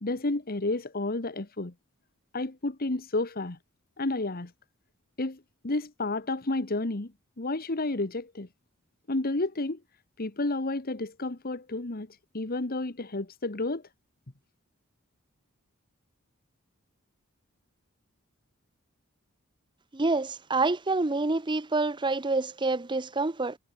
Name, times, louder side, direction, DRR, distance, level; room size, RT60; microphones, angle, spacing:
voice 1, 0.0-1.7 2.3-3.6 4.0-4.5 5.2-7.1 7.4-8.5 9.1-9.8 10.2-13.8, left 2 dB, 45° left, 1.4 m, -31 dB
voice 2, 19.9-23.6, right 3 dB, 20° right, 0.7 m, -27 dB
head